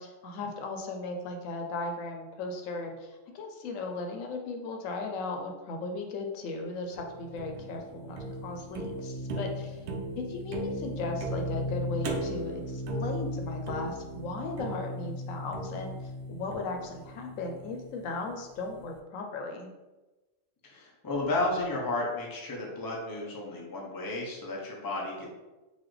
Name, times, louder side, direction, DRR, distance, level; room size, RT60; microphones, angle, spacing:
voice 1, 0.0-9.8 10.2-19.7, left 3 dB, 90° left, 3 dB, 1.0 m, -37 dB
sound 1, 6.9-18.1, equal, 65° right, 0.8 m, -36 dB
voice 2, 20.6-25.3, left 2 dB, 25° left, -2 dB, 0.6 m, -33 dB
4.0 x 2.6 x 3.2 m, 1.1 s
omnidirectional pair, 1.3 m